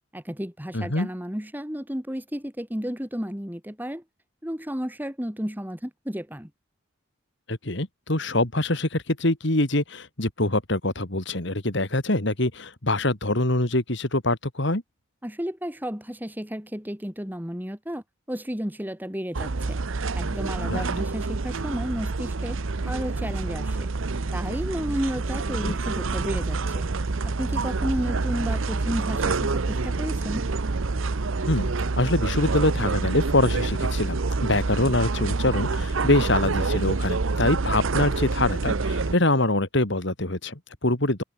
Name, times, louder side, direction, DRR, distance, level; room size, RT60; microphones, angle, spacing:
voice 1, 0.1-4.0 4.4-6.5 15.2-19.8 20.1-22.6 22.8-23.9 24.3-26.9 27.2-30.5, equal, 10° right, 2.3 m, -32 dB
voice 2, 0.7-1.1 7.5-14.8 20.7-20.9 25.6-25.7 31.5-31.7 32.0-41.2, left 2 dB, 55° left, 2.9 m, -24 dB
sound 1, 19.3-39.1, right 3 dB, 70° right, 0.8 m, -27 dB
head